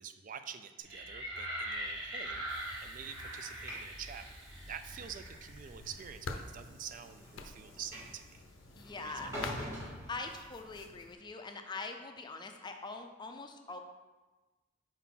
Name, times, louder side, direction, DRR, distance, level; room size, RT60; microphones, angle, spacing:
voice 1, 0.0-4.3 4.6-8.4 9.0-9.3, right 8 dB, 45° right, 10 dB, 0.4 m, -47 dB
sound 1, 0.8-6.1, right 1 dB, 80° right, 1.8 m, -42 dB
Train / Sliding door, 1.6-10.9, equal, 15° right, 1.5 m, -48 dB
sound 2, 5.8-11.2, left 4 dB, 80° left, 0.5 m, -47 dB
voice 2, 8.8-9.5 9.8-13.8, left 3 dB, 25° left, 5 dB, 0.4 m, -43 dB
4.6 x 4.0 x 5.6 m, 1.2 s
head